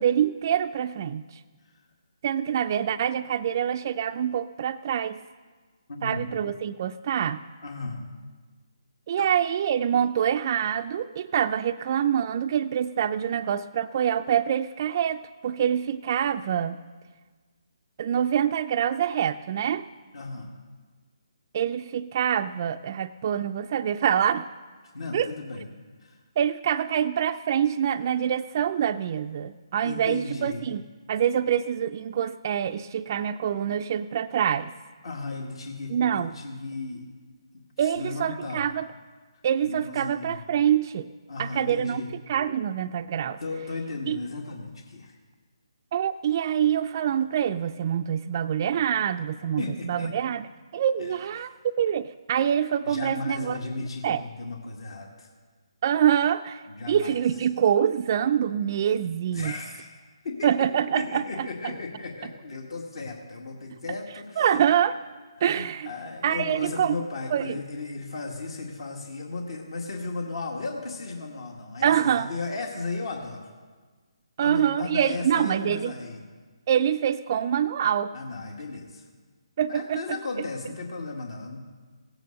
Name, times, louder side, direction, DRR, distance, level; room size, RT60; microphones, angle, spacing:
voice 1, 0.0-1.4 2.2-5.2 6.0-7.4 9.1-16.8 18.0-19.8 21.5-24.4 25.1-25.3 26.4-30.8 31.1-34.7 35.9-36.3 37.8-38.9 39.4-41.1 41.4-42.0 42.3-43.4 44.1-44.2 45.9-50.5 50.7-53.6 54.0-54.2 55.8-59.5 60.4-61.7 64.4-64.9 65.4-65.9 66.2-67.0 67.3-67.5 71.8-72.3 74.4-75.9 76.7-78.1 79.6-80.0, right 9 dB, 40° right, 9 dB, 0.4 m, -25 dB
voice 2, 5.9-6.3 7.6-8.0 9.2-9.3 20.1-20.5 24.9-25.6 26.0-26.2 29.8-30.7 35.0-37.0 37.8-38.6 39.6-40.4 41.3-42.1 43.4-45.2 49.4-50.1 51.0-51.6 52.8-55.3 56.7-57.2 59.3-59.9 60.2-60.5 60.9-64.6 65.4-73.5 74.4-76.2 78.1-79.1 79.7-81.6, left 3 dB, 65° left, 1 dB, 2.0 m, -35 dB
16.5 x 9.0 x 6.6 m, 1.4 s
figure-of-eight pair, 150°, 3 cm